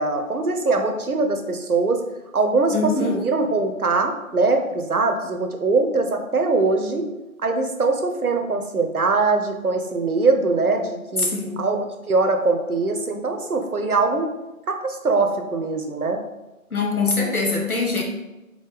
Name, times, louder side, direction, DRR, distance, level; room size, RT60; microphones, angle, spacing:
voice 1, 0.0-2.0 2.3-7.1 7.4-11.3 11.6-14.3 14.7-16.2, right 3 dB, 80° right, 5 dB, 0.8 m, -22 dB
voice 2, 2.7-3.2 11.2-11.7 16.7-18.0, left 3 dB, 85° left, 0 dB, 1.3 m, -23 dB
3.8 x 3.7 x 3.5 m, 1.0 s
figure-of-eight pair, 170°, 43 cm